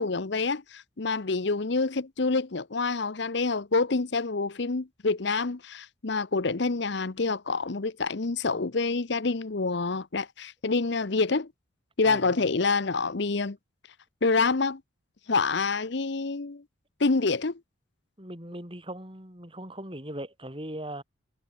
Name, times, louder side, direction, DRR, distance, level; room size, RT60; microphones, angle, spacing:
voice 1, 0.0-11.5 12.0-13.6 14.2-14.8 15.3-16.6 17.0-17.6, left 3 dB, 55° left, 0.8 m, -27 dB
voice 2, 12.0-12.6 18.2-21.0, right 1 dB, 25° right, 6.0 m, -39 dB
head